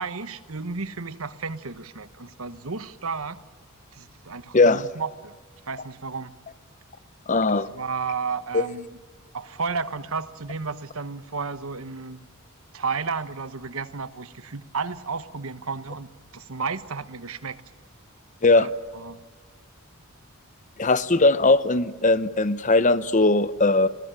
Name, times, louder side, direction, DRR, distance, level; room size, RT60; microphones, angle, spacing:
voice 1, 0.0-3.4 3.9-5.3 5.7-6.3 7.5-8.9 9.3-12.3 12.7-17.6 18.6-19.2, right 4 dB, 70° right, 1.2 m, -32 dB
voice 2, 7.3-7.7 8.5-8.6 18.4-18.7 20.8-23.9, left 2 dB, 35° left, 0.9 m, -19 dB
29.0 x 20.0 x 9.0 m
head